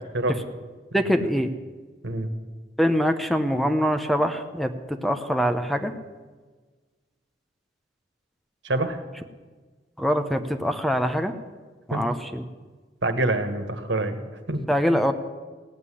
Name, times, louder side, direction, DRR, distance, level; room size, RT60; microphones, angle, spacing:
voice 1, 0.9-1.5 2.8-5.9 10.0-11.3 11.9-12.4 14.7-15.1, equal, ahead, 7 dB, 0.8 m, -24 dB
voice 2, 8.6-9.0 11.9-12.0 13.0-14.2 14.5-14.6, right 2 dB, 80° right, 7 dB, 1.6 m, -25 dB
17.0 x 8.2 x 9.8 m, 1.4 s
head